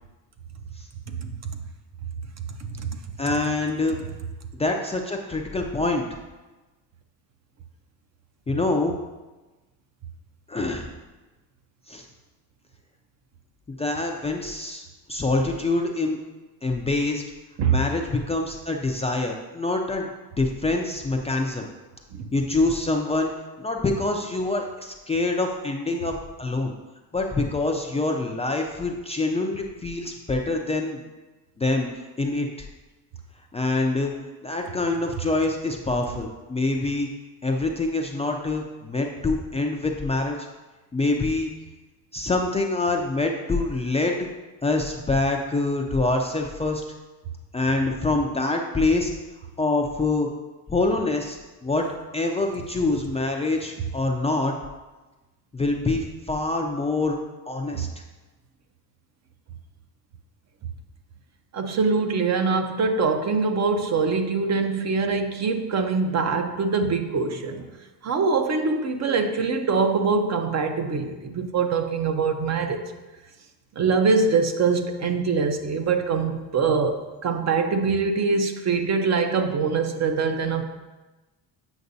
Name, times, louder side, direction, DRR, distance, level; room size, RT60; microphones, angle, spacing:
voice 1, 3.2-4.0 4.6-6.0 8.5-9.0 10.5-10.9 11.9-12.1 13.7-14.8 15.1-16.2 16.6-17.2 17.7-20.1 20.4-21.7 22.3-23.3 23.6-26.7 27.1-31.0 31.6-31.9 32.2-32.7 33.5-34.1 34.4-37.1 37.4-40.5 40.9-41.5 42.1-44.2 44.6-46.8 47.5-49.1 49.6-50.3 50.7-51.9 52.1-54.5 55.5-57.2 57.5-57.9, left 2 dB, 15° left, 1 dB, 0.4 m, -25 dB
voice 2, 61.5-67.6 68.0-72.8 73.8-80.7, right 4 dB, 40° right, 6 dB, 0.6 m, -23 dB
8.0 x 5.8 x 2.7 m, 1.2 s
cardioid pair, 125°, 41 cm